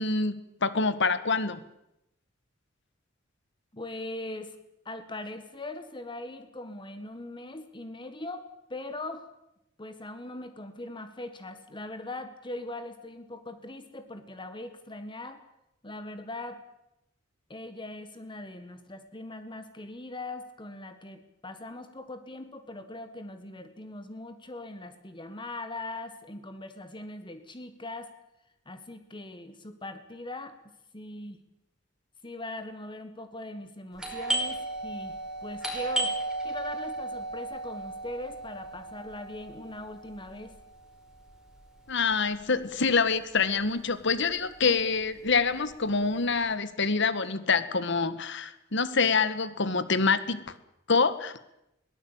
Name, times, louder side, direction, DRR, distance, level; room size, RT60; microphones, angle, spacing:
voice 1, 0.0-1.6 41.9-50.5 50.9-51.3, left 4 dB, 65° left, 14 dB, 1.7 m, -26 dB
voice 2, 3.7-4.6 4.8-9.3 9.8-15.4 15.8-16.6 17.5-28.1 28.6-30.5 30.9-31.4 32.2-35.1 35.4-36.1 36.4-40.5, left 2 dB, 25° left, 9 dB, 1.7 m, -40 dB
Doorbell, 34.0-43.4 43.6-43.7 44.3-44.7 45.0-46.4, right 2 dB, 5° right, 5.0 m, -35 dB
22.5 x 18.0 x 8.9 m, 0.86 s
head